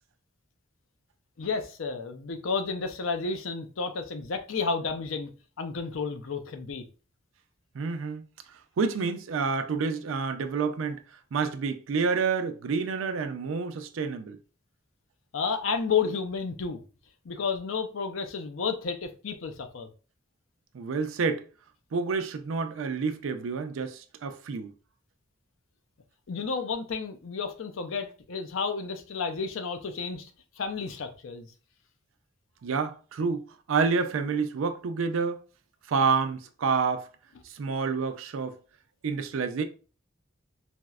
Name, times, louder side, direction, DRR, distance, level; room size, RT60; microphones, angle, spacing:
voice 1, 1.4-5.3 5.6-6.8 15.3-16.8 17.2-19.9 26.3-30.3 30.6-31.5, left 5 dB, 80° left, 0.5 m, -31 dB
voice 2, 7.7-8.2 8.8-11.0 11.3-14.4 20.7-21.4 21.9-24.7 32.6-33.4 33.7-35.4 35.9-37.1 37.4-38.6 39.0-39.6, right 5 dB, 85° right, 0.4 m, -28 dB
4.2 x 2.0 x 2.3 m
head